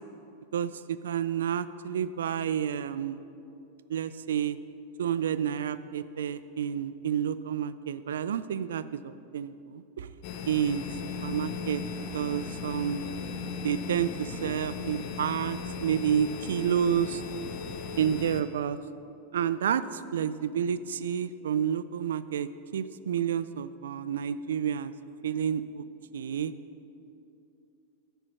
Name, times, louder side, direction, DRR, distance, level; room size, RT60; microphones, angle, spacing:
voice 1, 0.5-3.2 3.9-4.6 5.0-10.1 10.5-10.8 11.2-11.8 12.1-13.0 13.6-17.2 18.0-18.8 19.3-24.9 25.2-25.8 26.1-26.5, right 8 dB, 80° right, 14 dB, 0.3 m, -30 dB
sound 1, 10.2-18.4, left 5 dB, 55° left, 0.8 m, -37 dB
9.7 x 4.5 x 6.3 m, 2.6 s
hypercardioid pair, 105°, 0 cm